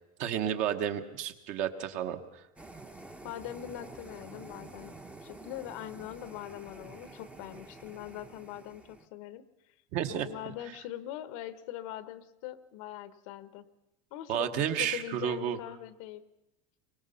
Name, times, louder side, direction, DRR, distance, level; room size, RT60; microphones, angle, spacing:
voice 1, 0.2-2.4 9.9-10.3 14.3-15.6, right 9 dB, 40° right, 8 dB, 1.3 m, -31 dB
sound 1, 2.6-9.1, right 2 dB, 5° right, 0.9 m, -49 dB
voice 2, 3.2-5.0 5.2-9.4 10.1-13.7 14.1-16.2, left 12 dB, 60° left, 15 dB, 1.1 m, -42 dB
23.5 x 19.5 x 5.7 m, 0.93 s
supercardioid pair, 165°, 18 cm